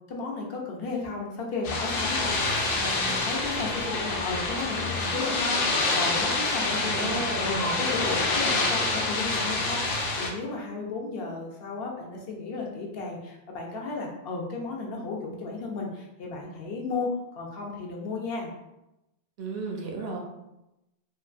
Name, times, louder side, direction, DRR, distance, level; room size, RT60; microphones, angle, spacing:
voice 1, 0.1-2.3 2.7-18.5, left 3 dB, 65° left, -1 dB, 0.8 m, -34 dB
sound 1, 1.6-10.3, left 3 dB, 90° left, 0.9 m, -27 dB
voice 2, 6.8-7.6 19.4-20.2, right 3 dB, 65° right, 0 dB, 0.7 m, -34 dB
2.9 x 2.3 x 2.4 m, 0.91 s
omnidirectional pair, 1.2 m